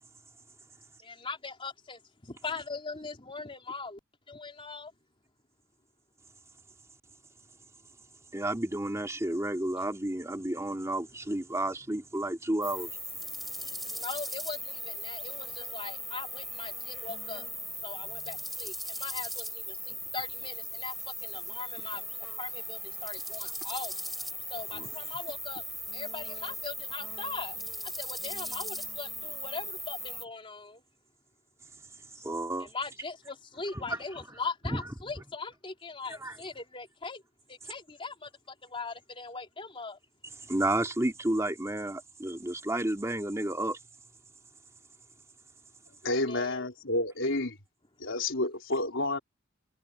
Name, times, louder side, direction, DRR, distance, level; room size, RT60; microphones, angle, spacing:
voice 1, 1.0-4.0 4.3-4.9 13.3-17.5 17.8-22.0 22.4-24.0 24.5-25.6 25.9-27.6 28.0-30.8 32.6-37.2 37.5-40.0 46.1-46.6, left 4 dB, 25° left, 3.9 m, -40 dB
voice 2, 8.3-12.9 24.7-24.9 32.2-32.7 33.9-34.0 34.6-34.8 36.1-36.4 40.5-43.8, right 1 dB, 15° right, 2.2 m, -31 dB
sound 1, 12.6-30.3, equal, ahead, 3.9 m, -38 dB
voice 3, 46.0-47.6 48.0-49.2, left 2 dB, 75° left, 4.1 m, -30 dB
head